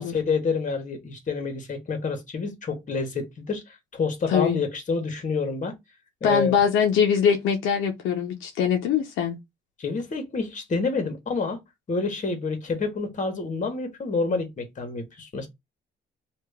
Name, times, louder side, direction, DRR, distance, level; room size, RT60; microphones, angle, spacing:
voice 1, 0.0-5.7 6.2-6.6 9.8-11.6 11.9-15.5, left 4 dB, 40° left, 1.3 m, -28 dB
voice 2, 4.3-4.6 6.2-9.4, left 7 dB, 90° left, 0.7 m, -22 dB
2.9 x 2.5 x 3.5 m
cardioid pair, 90°, 20 cm